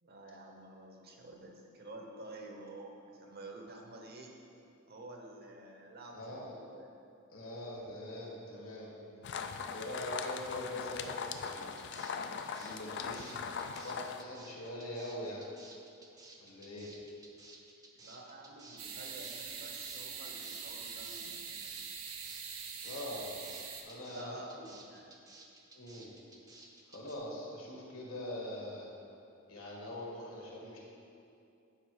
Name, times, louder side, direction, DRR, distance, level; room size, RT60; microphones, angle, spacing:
voice 1, 0.0-4.4 4.9-6.9 8.9-9.4 17.9-21.8 24.1-25.1, right 2 dB, 45° right, 2 dB, 0.9 m, -50 dB
voice 2, 6.1-6.5 7.3-8.9 9.3-11.8 12.4-13.4 13.8-15.4 16.4-16.9 22.8-23.3 23.8-24.4 25.7-26.1 26.9-28.9 29.5-30.8, left 1 dB, 75° left, -3 dB, 1.9 m, -43 dB
sound 1, 9.2-14.2, left 6 dB, 55° left, 0.4 m, -40 dB
sound 2, 11.4-27.2, right 3 dB, 15° right, 0.6 m, -55 dB
sound 3, 18.8-23.8, right 6 dB, 80° right, 0.8 m, -43 dB
8.8 x 5.0 x 4.8 m, 2.6 s
head